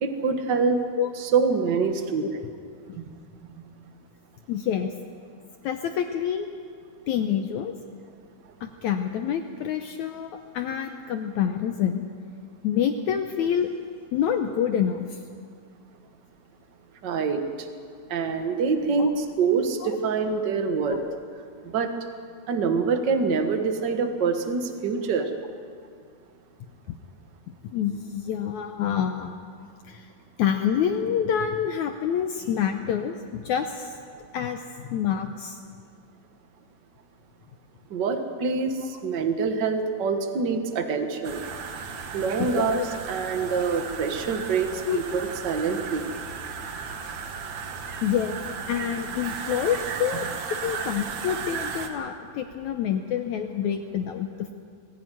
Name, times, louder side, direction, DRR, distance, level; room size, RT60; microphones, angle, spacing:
voice 1, 0.0-0.8 1.2-2.2 17.0-17.7 18.1-21.0 21.7-21.9 22.5-25.3 37.9-38.7 39.0-41.4 42.1-46.0, right 5 dB, 80° right, 6 dB, 0.9 m, -25 dB
voice 2, 4.5-4.9 5.6-6.5 7.1-7.7 8.6-12.0 12.6-13.7 14.1-15.2 19.0-19.1 19.8-19.9 20.9-21.2 26.9-27.0 27.7-29.3 29.9-30.1 30.4-33.9 34.3-35.6 38.8-38.9 42.4-42.8 44.9-45.0 48.0-48.4 48.7-50.3 50.6-54.5, left 8 dB, 75° left, 6 dB, 1.7 m, -27 dB
sound 1, 41.2-51.9, right 5 dB, 60° right, 2.3 m, -35 dB
21.0 x 15.5 x 9.2 m, 2.2 s
omnidirectional pair, 4.2 m